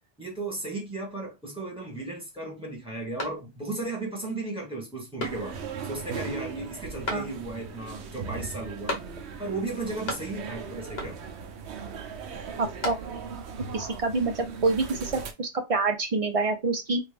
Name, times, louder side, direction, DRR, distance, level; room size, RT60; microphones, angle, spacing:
voice 1, 0.2-5.6 5.8-9.0 9.4-11.2, right 2 dB, 5° right, 1.5 m, -35 dB
sound 1, 3.2-3.9 4.3-4.4 5.2-5.8 7.0-7.7 8.9-9.5 9.7-10.6 11.0-11.5 12.4-13.4, left 1 dB, 70° left, 1.3 m, -37 dB
sound 2, 5.2-15.3, right 5 dB, 85° right, 0.9 m, -39 dB
voice 2, 12.6-13.0 13.7-17.0, right 3 dB, 40° right, 0.6 m, -27 dB
3.1 x 2.6 x 3.4 m
omnidirectional pair, 1.1 m